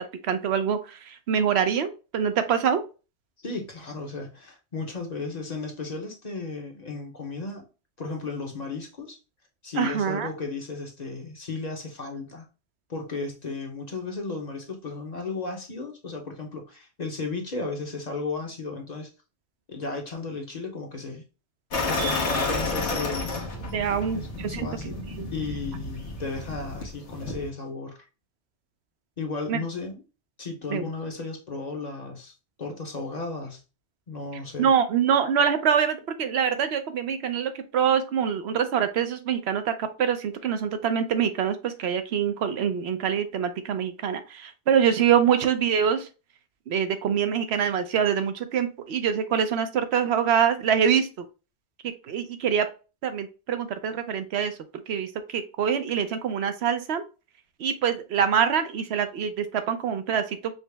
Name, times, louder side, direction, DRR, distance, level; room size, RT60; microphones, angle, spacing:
voice 1, 0.3-2.8 9.8-10.3 23.7-25.3 29.5-29.6 30.7-30.9 34.6-46.1 46.7-51.1 52.1-52.7 53.0-54.5 54.9-57.0 57.6-60.5, right 8 dB, 70° right, 9 dB, 0.9 m, -25 dB
voice 2, 3.4-7.6 8.0-9.2 9.6-12.4 12.9-19.1 19.7-21.2 21.9-23.3 24.1-25.0 25.3-28.0 29.2-30.0 30.4-32.3 32.6-33.6 34.1-34.7, left 3 dB, 40° left, 2 dB, 0.9 m, -34 dB
sound 1, 21.7-27.5, left 3 dB, 80° left, 1.3 m, -31 dB
5.4 x 2.0 x 3.3 m, 0.32 s
omnidirectional pair, 1.2 m